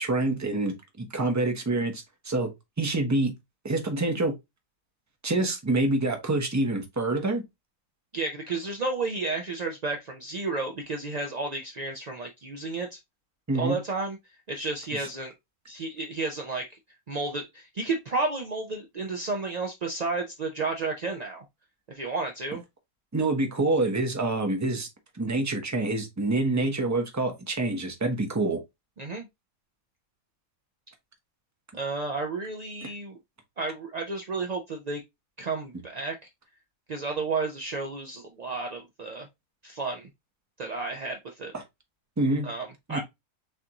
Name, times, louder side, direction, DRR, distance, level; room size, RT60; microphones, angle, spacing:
voice 1, 0.0-2.5 2.8-3.3 3.6-4.3 5.2-7.4 13.5-13.8 23.1-24.9 25.2-28.6 32.8-32.9 41.5-41.6 42.2-42.5 42.9-43.0, right 2 dB, 15° right, 0.6 m, -26 dB
voice 2, 8.1-13.0 13.5-14.2 14.5-15.3 15.7-16.8 17.1-21.4 21.9-22.6 29.0-29.3 31.7-33.2 33.6-35.0 35.4-36.1 36.9-39.3 39.6-40.1 40.6-41.5 42.4-43.0, right 3 dB, 55° right, 0.4 m, -32 dB
6.5 x 2.6 x 2.8 m
omnidirectional pair, 1.5 m